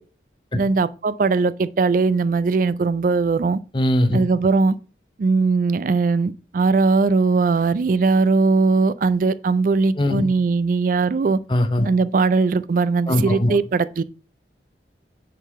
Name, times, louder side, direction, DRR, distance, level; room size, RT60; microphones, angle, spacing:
voice 1, 0.5-3.6 4.1-4.8 5.2-11.4 11.8-14.0, right 4 dB, 45° right, 0.3 m, -19 dB
voice 2, 3.7-4.2 10.0-10.2 11.5-11.9 13.1-13.6, left 1 dB, 25° left, 0.7 m, -20 dB
9.2 x 3.8 x 4.1 m
head